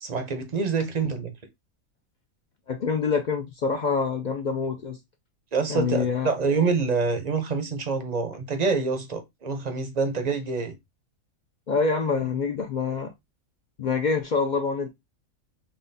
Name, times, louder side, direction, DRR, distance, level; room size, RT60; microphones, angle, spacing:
voice 1, 0.0-1.3 5.5-10.7, right 4 dB, 45° right, 0.6 m, -26 dB
voice 2, 2.7-5.0 5.7-6.3 11.7-13.1 13.8-14.9, left 5 dB, 70° left, 0.4 m, -26 dB
5.5 x 2.4 x 2.6 m
omnidirectional pair, 1.5 m